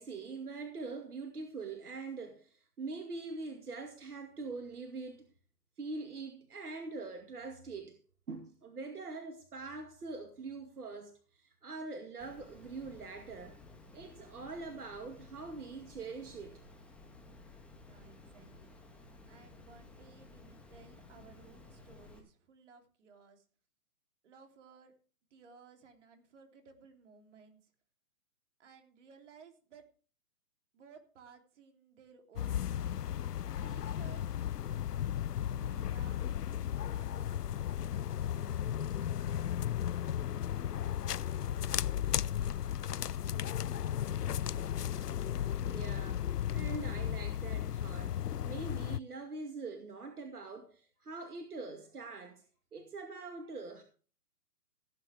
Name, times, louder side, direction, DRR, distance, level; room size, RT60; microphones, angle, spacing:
voice 1, 0.0-5.3 5.8-8.0 8.3-13.6 13.9-16.6 45.6-52.4 52.7-53.8, right 3 dB, 70° right, 2.3 m, -43 dB
Water, 12.2-22.2, left 2 dB, 5° left, 2.2 m, -55 dB
voice 2, 17.8-18.7 19.3-23.5 24.2-24.9 25.3-27.7 28.6-29.9 30.7-33.1 33.6-34.4 35.6-37.5, right 5 dB, 50° right, 3.4 m, -58 dB
sound 1, 32.4-49.0, left 10 dB, 85° left, 0.6 m, -35 dB
17.0 x 9.1 x 3.5 m
figure-of-eight pair, 135°, 46 cm